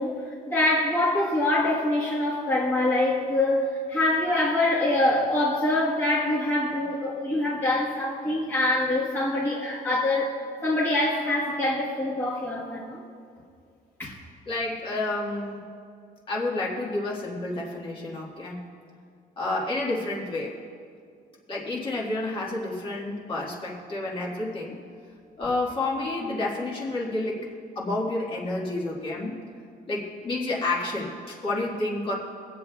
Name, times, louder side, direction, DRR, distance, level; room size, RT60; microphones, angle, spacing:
voice 1, 0.0-10.3 10.6-13.0 14.0-14.1 26.2-26.3, left 1 dB, 15° left, 1.4 m, -25 dB
voice 2, 14.5-15.6 16.3-18.6 19.4-20.6 21.5-24.8 25.4-27.5 27.7-29.4 29.9-32.1, left 2 dB, 35° left, 1.6 m, -30 dB
25.0 x 8.4 x 2.3 m
cardioid pair, 170°, 16 cm